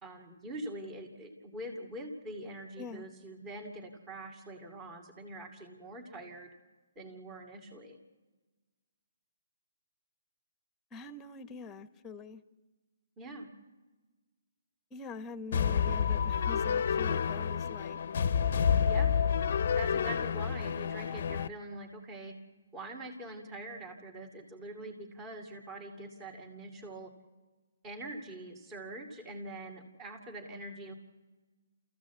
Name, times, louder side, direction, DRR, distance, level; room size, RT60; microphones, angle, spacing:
voice 1, 0.0-6.5 7.0-8.0 13.2-13.5 18.9-19.1 19.8-22.3 22.7-27.1 27.8-30.9, right 1 dB, 20° right, 2 dB, 2.4 m, -44 dB
voice 2, 10.9-12.4 14.9-18.0, left 4 dB, 15° left, 13 dB, 1.1 m, -44 dB
sound 1, 15.5-21.5, left 7 dB, 55° left, 0.7 m, -29 dB
29.5 x 15.0 x 8.2 m, 1.3 s
hypercardioid pair, 145°, 0 cm